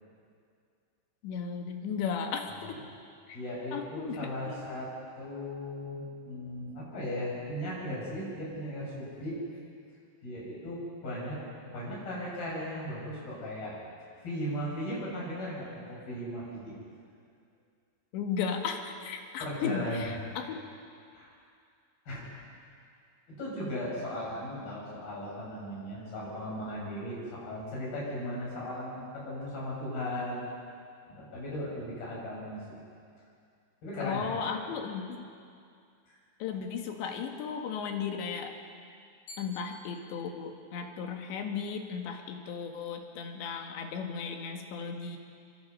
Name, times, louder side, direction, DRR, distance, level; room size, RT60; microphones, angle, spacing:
voice 1, 1.2-2.8 3.3-3.4 3.7-4.7 18.1-20.6 34.0-35.3 36.4-38.6 39.4-45.2, left 6 dB, 90° left, 4 dB, 4.0 m, -35 dB
voice 2, 3.3-4.9 5.2-9.4 10.2-11.4 11.7-13.8 14.2-16.7 19.4-20.4 21.1-21.3 22.1-22.2 23.3-30.5 31.1-32.8 33.8-34.5 36.1-36.2 39.3-39.5, equal, 60° left, -5 dB, 8.5 m, -37 dB
27.5 x 23.5 x 5.5 m, 2.3 s
omnidirectional pair, 5.0 m